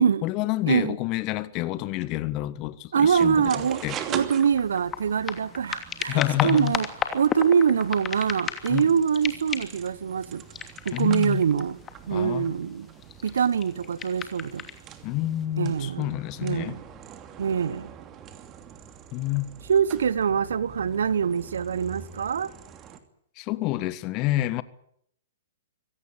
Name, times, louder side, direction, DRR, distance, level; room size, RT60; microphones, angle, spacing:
voice 1, 0.0-3.5 3.8-4.0 6.1-6.8 8.7-8.9 10.9-11.4 12.1-12.5 15.0-16.8 19.1-19.5 23.4-24.6, left 16 dB, 35° left, 1.6 m, -28 dB
voice 2, 0.7-1.0 2.9-3.8 4.1-6.9 7.1-10.4 10.8-11.8 12.1-12.9 13.2-14.7 15.6-16.1 16.4-16.8 17.4-17.9 19.7-22.5, right 7 dB, 70° right, 1.2 m, -24 dB
sound 1, 3.1-23.0, right 9 dB, 25° right, 2.8 m, -43 dB
sound 2, 3.5-3.6 4.0-8.9 9.1-9.9 10.5-12.2 12.9-14.8 15.4-15.5, left 7 dB, 20° left, 2.8 m, -34 dB
25.0 x 17.5 x 9.0 m
figure-of-eight pair, 115°, 0 cm